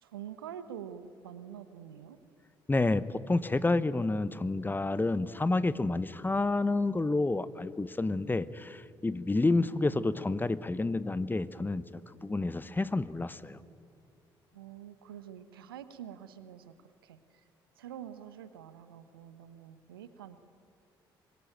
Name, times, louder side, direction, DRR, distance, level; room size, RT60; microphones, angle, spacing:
voice 1, 0.0-2.2 9.3-9.9 14.5-17.4 17.8-20.4, right 9 dB, 80° right, 12 dB, 1.1 m, -46 dB
voice 2, 2.7-13.6, left 2 dB, 15° left, 17 dB, 1.0 m, -29 dB
25.5 x 22.0 x 9.1 m, 2.6 s
figure-of-eight pair, 50°, 12 cm